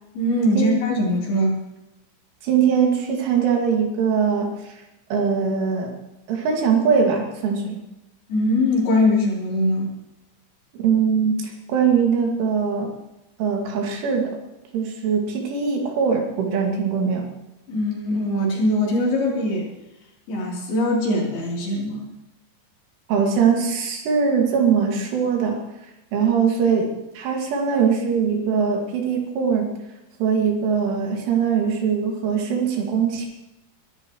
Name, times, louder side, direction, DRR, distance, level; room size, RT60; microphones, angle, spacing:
voice 1, 0.1-1.6 8.3-9.9 17.7-19.7 20.3-22.1, left 1 dB, 55° left, -3 dB, 5.1 m, -21 dB
voice 2, 2.4-4.8 5.1-5.9 6.3-7.8 10.7-12.9 13.4-14.4 14.7-17.3 23.1-25.6 26.1-29.7 30.2-33.3, right 6 dB, 75° right, 1 dB, 4.6 m, -21 dB
23.0 x 13.5 x 3.1 m, 0.93 s
omnidirectional pair, 5.7 m